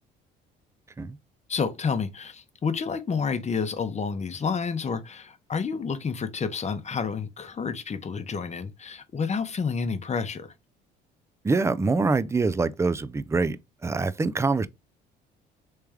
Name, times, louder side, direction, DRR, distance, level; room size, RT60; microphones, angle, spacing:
voice 1, 1.5-10.5, left 5 dB, 30° left, 0.8 m, -29 dB
voice 2, 11.4-13.6 13.8-14.7, right 3 dB, 15° right, 0.4 m, -24 dB
3.3 x 3.2 x 3.4 m
supercardioid pair, 65°, 21 cm